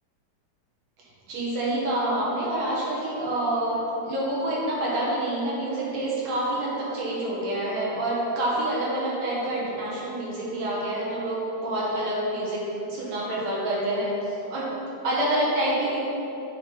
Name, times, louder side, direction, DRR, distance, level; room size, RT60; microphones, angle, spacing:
voice 1, 1.3-14.7 15.0-16.0, right 1 dB, 65° right, -6 dB, 2.7 m, -27 dB
8.2 x 3.6 x 5.8 m, 3.0 s
omnidirectional pair, 3.4 m